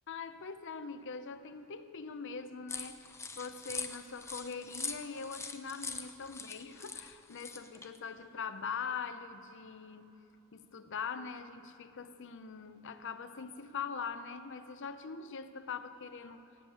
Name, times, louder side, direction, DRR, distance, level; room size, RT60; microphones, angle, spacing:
voice 1, 0.1-10.2 10.5-16.4, left 5 dB, 60° left, 10 dB, 0.7 m, -42 dB
sound 1, 2.7-8.0, left 4 dB, 10° left, 0.6 m, -42 dB
17.5 x 7.2 x 7.9 m, 2.9 s
head